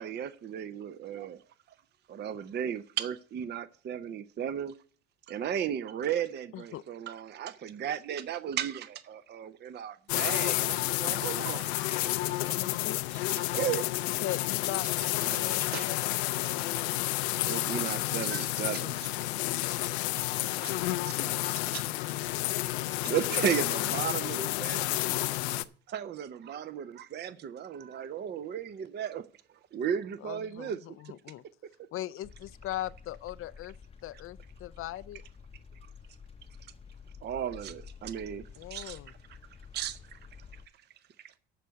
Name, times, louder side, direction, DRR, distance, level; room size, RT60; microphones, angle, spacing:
voice 1, 0.0-1.4 2.1-4.7 5.3-11.7 12.0-12.2 13.3-13.9 15.0-15.9 17.4-19.1 19.8-19.9 23.0-25.0 25.9-29.2 29.7-30.8 37.2-38.4 38.7-39.0 39.7-40.2, right 9 dB, 30° right, 0.6 m, -35 dB
sound 1, 10.1-25.6, left 17 dB, 85° left, 0.6 m, -30 dB
voice 2, 12.4-13.0 14.0-14.9 15.4-16.2 30.2-31.4 31.9-33.7 34.0-35.2 38.6-39.1, left 14 dB, 45° left, 0.5 m, -39 dB
voice 3, 20.6-23.0 23.7-25.4, right 4 dB, 90° right, 5.3 m, -58 dB
sound 2, 32.2-40.7, left 6 dB, 20° left, 0.8 m, -51 dB
12.5 x 4.6 x 8.2 m
supercardioid pair, 90°, 32 cm